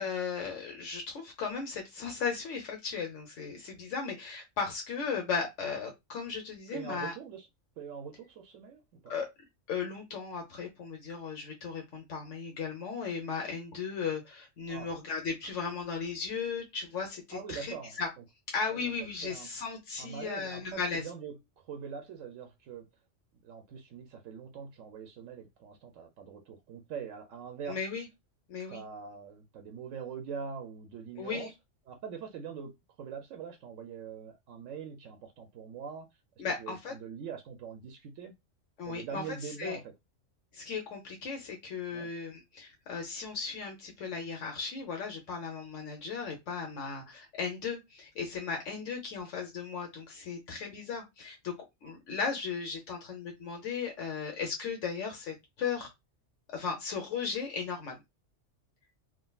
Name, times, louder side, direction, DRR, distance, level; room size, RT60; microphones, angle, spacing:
voice 1, 0.0-7.1 9.1-9.3 9.7-18.1 18.5-21.1 27.7-28.1 28.5-28.8 31.2-31.5 36.4-37.0 38.8-39.8 40.5-51.5 51.8-55.9 56.5-58.0, left 5 dB, 75° left, 1.1 m, -36 dB
voice 2, 6.7-7.5 7.8-9.1 14.7-14.9 17.3-18.0 18.7-18.9 19.2-19.5 20.0-21.4 21.6-22.9 23.4-27.8 28.7-31.5 31.9-32.7 33.0-36.1 36.6-38.3 38.9-39.9 41.9-42.1, right 6 dB, 85° right, 1.0 m, -43 dB
3.6 x 2.2 x 2.3 m
omnidirectional pair, 1.3 m